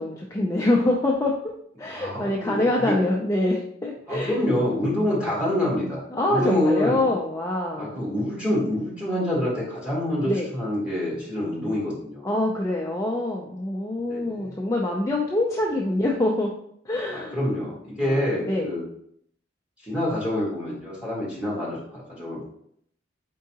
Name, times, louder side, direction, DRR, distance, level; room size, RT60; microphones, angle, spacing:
voice 1, 0.0-1.3 1.8-4.3 6.1-8.0 10.3-10.5 12.2-16.5 16.9-17.4 18.0-18.7 22.2-22.3, left 1 dB, 15° left, -2 dB, 0.4 m, -25 dB
voice 2, 1.8-3.0 4.1-7.1 7.8-12.4 14.1-14.6 17.1-18.8 19.8-22.5, left 1 dB, 5° right, -6 dB, 1.5 m, -27 dB
4.5 x 3.6 x 2.8 m, 0.68 s
head